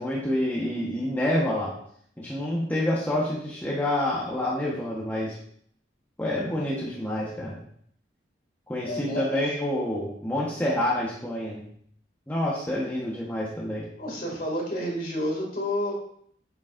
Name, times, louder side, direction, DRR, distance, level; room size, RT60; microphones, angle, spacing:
voice 1, 0.0-1.7 2.2-5.4 6.2-7.6 8.7-11.7 12.3-13.9, left 1 dB, 10° left, -6 dB, 1.2 m, -28 dB
voice 2, 8.8-9.5 14.0-15.9, left 1 dB, 45° left, -2 dB, 2.4 m, -30 dB
8.8 x 6.2 x 2.6 m, 0.64 s
head